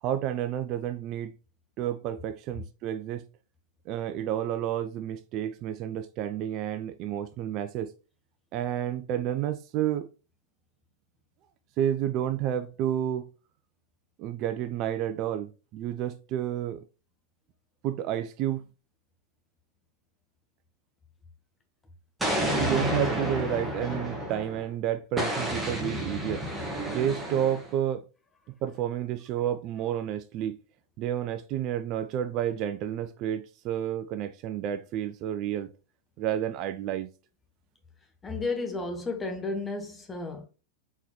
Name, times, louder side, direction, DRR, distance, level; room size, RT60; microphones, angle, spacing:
voice 1, 0.0-1.3 1.8-3.2 3.9-7.9 8.5-10.1 11.8-13.3 14.2-16.8 17.8-18.7 22.5-26.5 26.9-28.1 28.6-30.6 31.0-35.7 36.2-37.1, right 10 dB, 40° right, 0.4 m, -30 dB
Explosion, 22.2-24.6 25.2-27.7, equal, 5° right, 1.4 m, -30 dB
voice 2, 38.2-40.5, left 3 dB, 15° left, 1.2 m, -33 dB
4.1 x 3.9 x 3.0 m
figure-of-eight pair, 95°, 0 cm